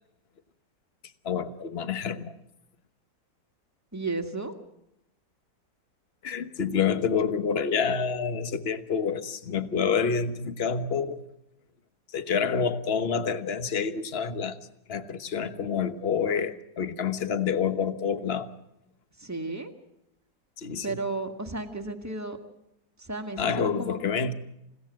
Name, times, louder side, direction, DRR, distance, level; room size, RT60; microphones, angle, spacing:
voice 1, 1.2-2.3 6.2-11.2 12.1-14.6 14.9-18.5 20.6-21.0 23.4-24.3, left 6 dB, 40° left, 10 dB, 1.2 m, -28 dB
voice 2, 3.9-4.5 19.2-19.7 20.8-22.4 23.0-24.0, right 3 dB, 10° right, 4 dB, 1.7 m, -33 dB
28.5 x 17.0 x 7.5 m, 0.87 s
omnidirectional pair, 1.9 m